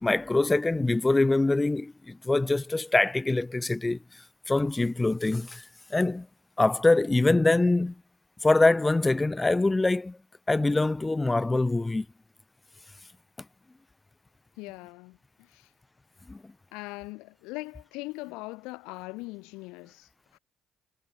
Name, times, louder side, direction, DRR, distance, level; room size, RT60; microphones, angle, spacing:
voice 1, 0.0-4.0 4.5-5.6 5.9-6.3 6.6-7.9 8.4-10.2 10.5-12.1 16.3-16.4, left 2 dB, 20° left, 0.3 m, -24 dB
voice 2, 14.6-15.7 16.7-20.4, left 24 dB, 80° left, 0.5 m, -41 dB
hypercardioid pair, 50°, 0 cm